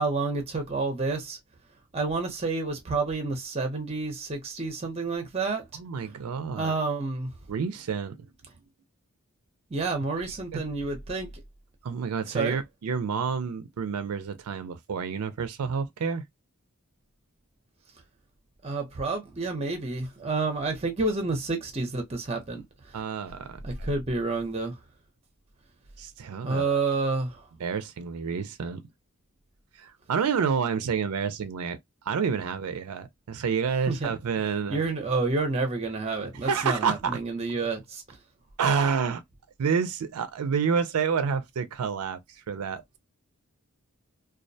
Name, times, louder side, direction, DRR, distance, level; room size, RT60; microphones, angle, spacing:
voice 1, 0.0-1.4 1.9-5.6 6.6-7.3 9.7-11.3 12.3-12.6 18.6-22.6 23.6-24.8 26.4-27.4 33.9-34.1 34.7-38.0, right 3 dB, 25° right, 0.6 m, -29 dB
voice 2, 5.7-6.7 7.5-8.3 10.5-10.6 11.8-16.2 22.9-23.9 26.0-26.8 27.6-28.8 29.8-31.8 32.0-34.8 36.4-37.2 38.6-39.2 39.6-43.0, right 6 dB, 80° right, 0.4 m, -29 dB
2.3 x 2.1 x 2.6 m
head